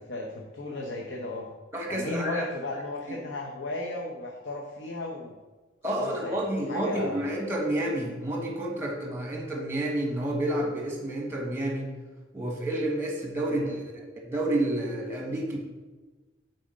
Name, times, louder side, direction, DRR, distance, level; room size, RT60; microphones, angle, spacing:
voice 1, 0.0-1.5 1.9-5.3 5.9-6.4 6.7-7.2 13.5-13.8, left 2 dB, 85° left, 0 dB, 0.9 m, -35 dB
voice 2, 1.7-2.5 3.1-3.2 5.8-11.9 12.3-15.6, right 1 dB, 15° right, 0 dB, 1.4 m, -30 dB
7.5 x 4.2 x 6.4 m, 1.2 s
head